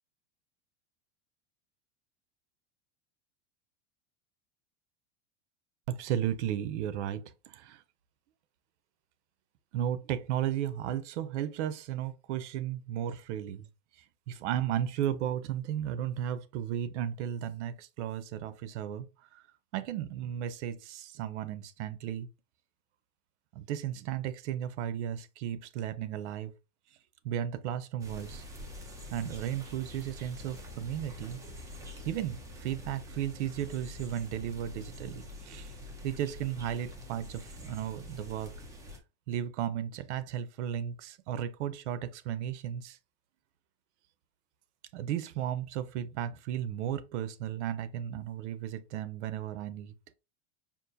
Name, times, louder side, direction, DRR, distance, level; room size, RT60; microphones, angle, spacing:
voice 1, 5.9-7.8 9.7-13.7 14.3-19.1 19.3-19.4 19.7-22.3 23.5-26.5 27.2-28.4 29.1-31.4 32.0-35.7 36.0-38.5 39.3-43.0 44.9-50.1, right 10 dB, 80° right, 0.6 m, -34 dB
sound 1, 28.0-39.0, left 1 dB, 10° right, 0.4 m, -46 dB
5.2 x 2.5 x 2.6 m
supercardioid pair, 155°, 35 cm